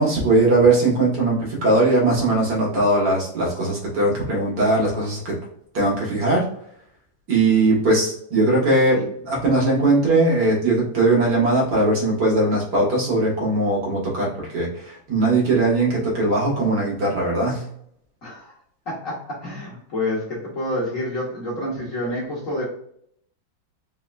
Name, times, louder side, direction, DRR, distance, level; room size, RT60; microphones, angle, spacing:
voice 1, 0.0-5.3 5.7-6.5 7.3-9.0 9.3-17.6, right 2 dB, 55° right, -4 dB, 2.0 m, -20 dB
voice 2, 18.2-18.6 18.9-22.6, left 1 dB, 45° left, -4 dB, 1.4 m, -28 dB
4.3 x 3.9 x 2.4 m, 0.68 s
omnidirectional pair, 2.3 m